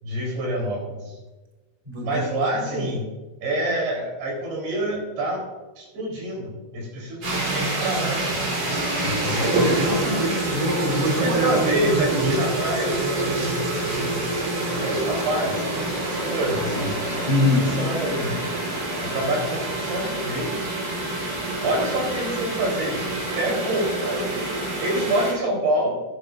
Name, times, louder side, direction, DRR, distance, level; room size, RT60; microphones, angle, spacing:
voice 1, 0.0-1.2 2.0-3.1 3.4-5.4 5.8-8.5 9.0-9.6 11.0-14.3 14.6-15.7 16.1-17.0 17.6-18.4 19.0-20.6 21.6-23.1 23.4-26.0, right 1 dB, 85° right, -2 dB, 6.1 m, -27 dB
voice 2, 1.8-2.3 2.5-2.9 9.5-12.4 17.3-17.8, left 1 dB, 10° right, -3 dB, 2.4 m, -25 dB
sound 1, 7.2-25.3, right 2 dB, 40° right, 4.4 m, -26 dB
17.0 x 11.0 x 2.6 m, 1.2 s
omnidirectional pair, 4.4 m